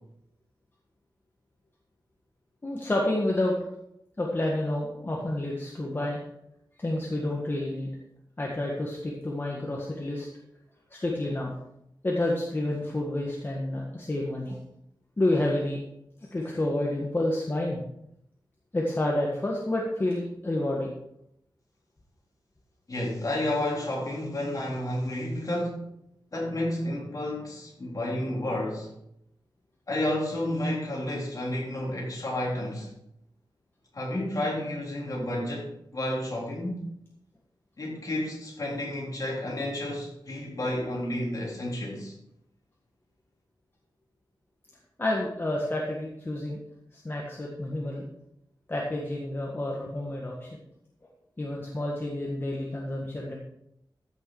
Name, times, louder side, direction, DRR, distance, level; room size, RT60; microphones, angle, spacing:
voice 1, 2.6-3.5 4.2-6.2 6.8-7.9 8.4-10.3 10.9-11.5 12.0-14.6 15.2-15.8 16.2-17.8 18.7-20.9 45.0-46.6 46.9-48.0 48.7-50.5 51.4-53.3, left 1 dB, 30° left, -2 dB, 1.7 m, -29 dB
voice 2, 22.9-25.9 26.3-28.9 29.9-32.9 33.9-36.8 37.8-42.1, left 1 dB, 45° left, -3 dB, 3.8 m, -31 dB
14.0 x 6.6 x 4.9 m, 0.79 s
wide cardioid pair, 125°, 8 cm